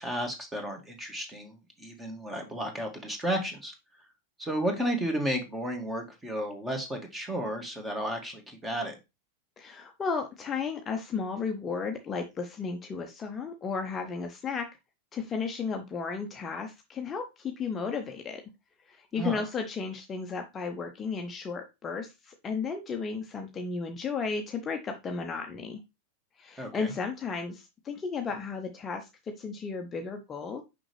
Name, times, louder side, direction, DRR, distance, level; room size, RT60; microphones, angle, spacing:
voice 1, 0.0-3.7 4.4-8.9 19.2-19.4 26.6-26.9, right 1 dB, 10° right, 4 dB, 1.9 m, -33 dB
voice 2, 9.6-14.7 15.1-18.4 18.9-25.8 26.4-30.6, left 5 dB, 20° left, 4 dB, 0.8 m, -34 dB
6.1 x 5.2 x 3.2 m, 0.24 s
figure-of-eight pair, 90°, 0 cm